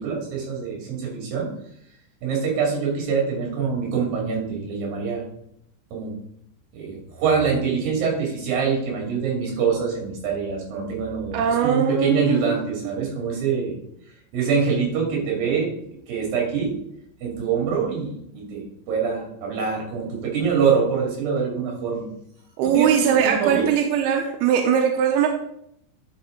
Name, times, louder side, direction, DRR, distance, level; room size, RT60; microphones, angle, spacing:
voice 1, 0.0-1.5 2.2-5.2 5.9-6.1 6.8-13.8 14.3-15.7 16.1-16.7 17.2-18.6 18.9-22.1 22.7-23.7, right 6 dB, 55° right, -1 dB, 3.9 m, -24 dB
voice 2, 11.3-12.6 13.0-13.1 22.6-25.3, right 8 dB, 80° right, 2 dB, 2.4 m, -21 dB
10.5 x 5.9 x 3.8 m, 0.75 s
omnidirectional pair, 5.2 m